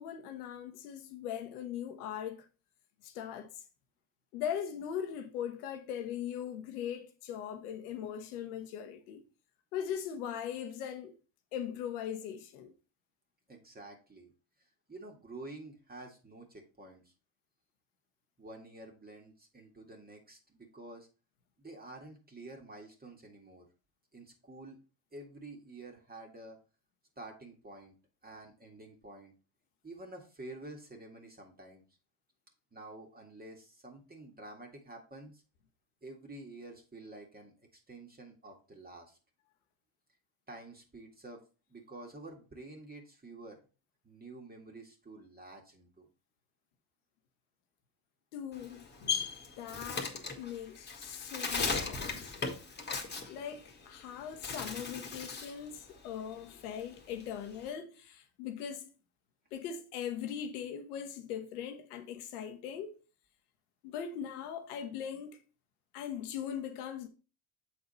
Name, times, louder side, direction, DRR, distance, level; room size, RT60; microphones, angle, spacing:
voice 1, 0.0-2.5 3.0-3.6 4.3-9.2 9.7-11.1 11.5-12.7 48.3-52.3 53.3-58.9 59.5-63.0 63.8-65.4 65.9-67.1, left 9 dB, 90° left, 1.2 m, -40 dB
voice 2, 13.5-14.3 14.9-17.1 18.4-21.1 21.6-23.7 24.1-24.8 25.1-26.6 27.2-27.9 28.2-29.3 29.8-31.8 32.7-35.4 36.0-39.2 40.5-41.4 41.7-43.6 44.0-46.1, right 2 dB, 20° right, 2.0 m, -49 dB
Bird, 48.5-54.0 54.3-55.6 56.0-57.7, left 4 dB, 25° left, 1.7 m, -37 dB
7.5 x 4.2 x 4.2 m
supercardioid pair, 75°, 43 cm